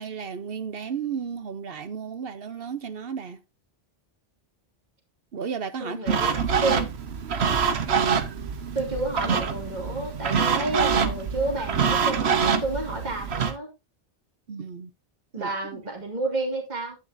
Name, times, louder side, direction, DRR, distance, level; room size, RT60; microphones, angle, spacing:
voice 1, 0.0-3.4 5.3-6.0 6.4-6.5 14.5-14.9 15.4-15.8, right 6 dB, 65° right, 1.0 m, -34 dB
voice 2, 5.8-6.9 8.7-13.7 15.3-17.0, right 2 dB, 45° right, 2.4 m, -30 dB
sound 1, 6.1-13.5, right 6 dB, 80° right, 1.2 m, -25 dB
10.5 x 9.3 x 2.6 m
omnidirectional pair, 1.1 m